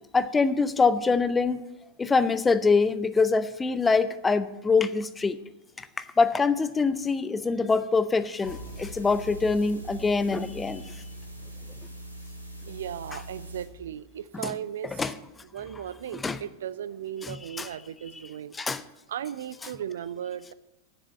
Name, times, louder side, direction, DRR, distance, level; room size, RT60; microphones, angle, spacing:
voice 1, 0.1-1.6 2.0-5.4 5.8-10.9 14.4-14.5 15.0-15.1 16.2-16.4 17.2-17.7 18.5-18.8, left 4 dB, 15° left, 14 dB, 0.6 m, -24 dB
sound 1, 8.4-13.7, right 1 dB, 90° left, 2.0 m, -41 dB
voice 2, 12.7-15.1 15.5-18.5 19.1-20.5, right 10 dB, 60° right, 17 dB, 0.4 m, -36 dB
9.9 x 7.3 x 8.0 m, 0.96 s
figure-of-eight pair, 90°, 0 cm